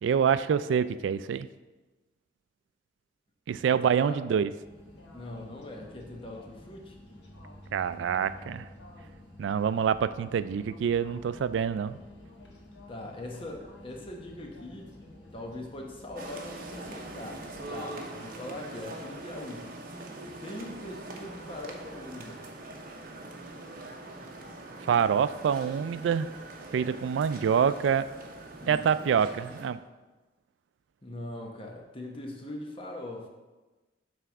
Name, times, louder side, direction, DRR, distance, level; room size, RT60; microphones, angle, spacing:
voice 1, 0.0-1.5 3.5-4.5 7.7-8.7 9.4-12.0 24.9-26.3 26.7-28.1 28.7-29.8, right 7 dB, 90° right, 14 dB, 0.3 m, -26 dB
sound 1, 4.6-17.8, left 1 dB, 80° left, 1.2 m, -50 dB
voice 2, 5.1-6.9 12.9-14.9 15.3-19.8 20.4-22.4 28.6-28.8 31.0-33.3, left 1 dB, 30° left, 1 dB, 1.0 m, -41 dB
sound 2, 16.2-29.7, right 2 dB, 50° right, 0.8 m, -43 dB
7.5 x 3.4 x 5.9 m, 1.2 s
head